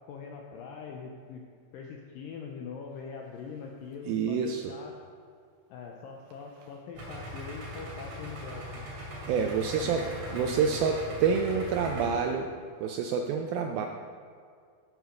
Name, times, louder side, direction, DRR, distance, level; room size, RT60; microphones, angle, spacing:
voice 1, 0.1-1.4 1.7-5.0 5.7-8.9 9.8-11.2 11.5-12.5, left 5 dB, 80° left, 1 dB, 2.0 m, -43 dB
voice 2, 4.1-4.7 9.3-10.0 10.3-12.5 12.8-13.9, right 6 dB, 85° right, 4 dB, 2.1 m, -28 dB
Idling, 6.9-12.0, equal, 45° right, 3.5 m, -40 dB
14.0 x 5.9 x 6.4 m, 2.2 s
omnidirectional pair, 4.9 m